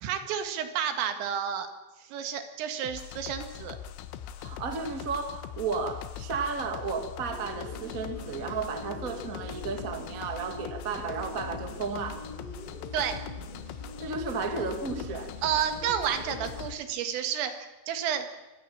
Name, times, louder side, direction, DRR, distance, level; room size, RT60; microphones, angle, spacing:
voice 1, 0.0-1.7 2.0-3.8 12.9-13.2 15.4-18.3, right 9 dB, 80° right, 8 dB, 4.4 m, -31 dB
sound 1, 2.8-16.7, left 9 dB, 85° left, 3.6 m, -41 dB
voice 2, 4.4-12.2 14.0-15.3, right 4 dB, 55° right, 6 dB, 0.9 m, -33 dB
sound 2, 7.3-16.6, right 1 dB, 20° right, 6.9 m, -45 dB
25.0 x 15.5 x 8.8 m, 1.1 s
omnidirectional pair, 5.9 m